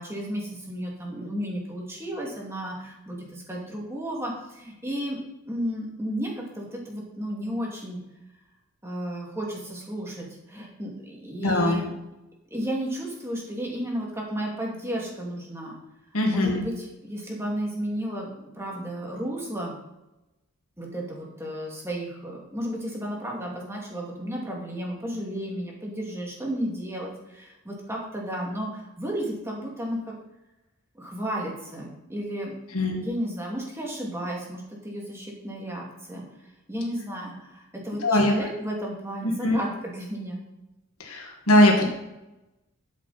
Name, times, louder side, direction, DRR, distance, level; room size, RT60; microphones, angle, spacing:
voice 1, 0.0-5.2 5.5-8.0 8.8-11.9 12.5-15.8 16.3-19.8 20.8-30.1 30.9-32.6 32.9-40.4, equal, 10° right, -2 dB, 2.3 m, -33 dB
voice 2, 11.4-11.8 16.1-16.6 32.7-33.0 38.0-38.3 39.2-39.6 41.0-41.9, left 1 dB, 80° left, 2 dB, 2.0 m, -21 dB
12.5 x 7.5 x 4.2 m, 0.96 s
head